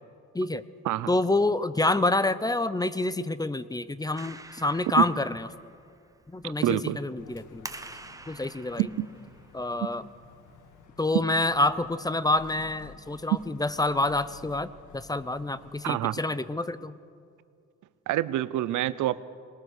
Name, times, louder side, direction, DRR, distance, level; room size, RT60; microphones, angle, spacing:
voice 1, 1.1-5.5 6.3-7.7 8.3-8.9 9.5-10.0 11.0-14.7 14.9-17.0, left 2 dB, 15° left, 15 dB, 0.6 m, -27 dB
Clapping, 4.1-10.9, right 2 dB, 10° right, 1.0 m, -48 dB
voice 2, 6.4-7.0 8.8-9.1 15.8-16.2 18.1-19.2, right 14 dB, 80° right, 16 dB, 0.7 m, -27 dB
sound 1, 7.2-15.8, left 6 dB, 75° left, 1.7 m, -52 dB
21.0 x 19.5 x 6.5 m, 2.3 s
cardioid pair, 90°, 30 cm